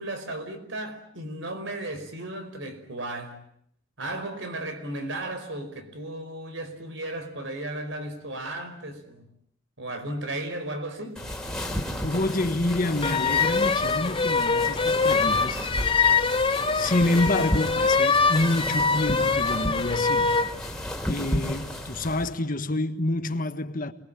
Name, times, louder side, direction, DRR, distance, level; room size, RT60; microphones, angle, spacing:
voice 1, 0.0-3.5 4.0-9.3 9.8-11.2, right 1 dB, 70° right, 5.1 m, -35 dB
sound 1, 11.2-22.3, equal, 5° left, 3.3 m, -33 dB
voice 2, 12.0-16.0 16.7-20.4 21.1-23.9, left 2 dB, 45° left, 1.6 m, -27 dB
sound 2, 13.0-20.5, left 4 dB, 25° left, 1.1 m, -24 dB
28.5 x 22.0 x 8.9 m
head